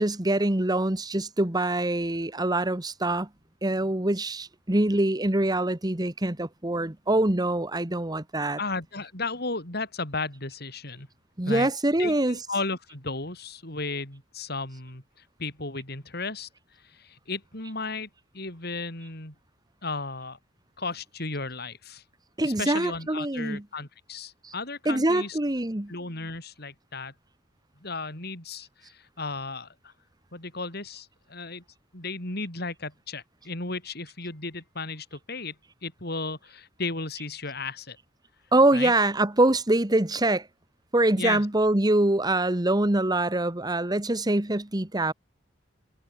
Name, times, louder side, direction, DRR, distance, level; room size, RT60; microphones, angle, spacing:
voice 1, 0.0-3.3 3.6-8.6 11.4-12.4 22.4-23.6 24.4-24.5 24.8-25.9 38.5-40.5 40.9-45.1, right 1 dB, 20° right, 1.5 m, -24 dB
voice 2, 8.6-11.1 11.5-11.7 12.0-15.0 15.4-16.5 16.8-19.3 19.8-20.4 20.8-22.0 22.4-25.4 25.9-27.1 27.8-29.9 30.3-31.6 31.9-35.6 35.8-38.0 38.7-38.9 41.2-41.5, left 3 dB, 60° left, 7.4 m, -34 dB
head